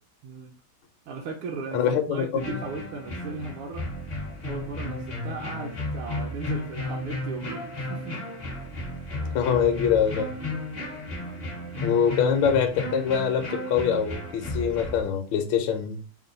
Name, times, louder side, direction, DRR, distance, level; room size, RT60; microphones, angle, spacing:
voice 1, 0.2-0.5 1.1-3.9 4.4-8.2, right 3 dB, 80° right, 1.4 m, -36 dB
voice 2, 1.7-2.4 9.3-10.3 11.8-16.0, left 8 dB, 75° left, 1.3 m, -24 dB
sound 1, 2.4-15.0, left 1 dB, 40° left, 0.6 m, -34 dB
3.6 x 2.2 x 3.8 m
omnidirectional pair, 2.4 m